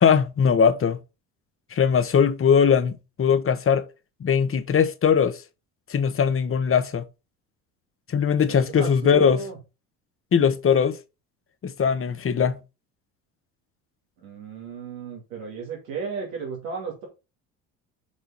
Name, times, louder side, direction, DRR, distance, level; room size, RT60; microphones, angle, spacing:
voice 1, 0.0-1.0 1.7-3.8 4.2-5.4 5.9-7.0 8.1-9.4 10.3-11.0 11.6-12.6, left 7 dB, 30° left, 1.2 m, -20 dB
voice 2, 8.5-9.6 14.2-17.0, right 5 dB, 85° right, 2.6 m, -34 dB
6.4 x 4.5 x 5.6 m
hypercardioid pair, 65°, 40 cm